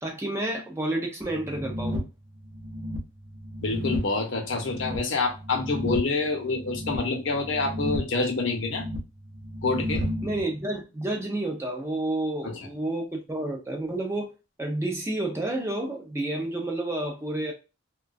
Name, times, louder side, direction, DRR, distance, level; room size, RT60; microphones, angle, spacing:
voice 1, 0.0-2.1 10.2-14.3 14.6-17.5, right 1 dB, 10° right, 0.4 m, -30 dB
sound 1, 1.3-10.4, equal, 65° right, 0.7 m, -34 dB
voice 2, 3.6-8.8 9.6-10.0 12.4-12.6, left 3 dB, 60° left, 0.7 m, -27 dB
2.3 x 2.2 x 2.4 m
head